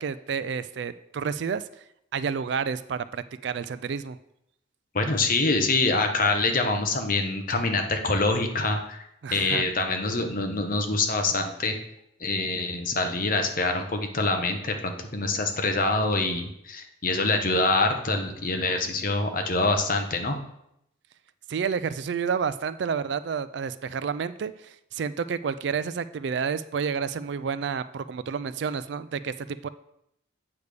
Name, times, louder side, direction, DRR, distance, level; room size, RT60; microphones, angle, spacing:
voice 1, 0.0-1.6 2.1-4.2 9.2-9.6 21.5-29.7, right 6 dB, 60° right, 14 dB, 0.3 m, -30 dB
voice 2, 4.9-9.0 9.3-11.8 12.2-20.4, left 3 dB, 45° left, 5 dB, 0.9 m, -25 dB
8.1 x 3.5 x 6.6 m, 0.78 s
head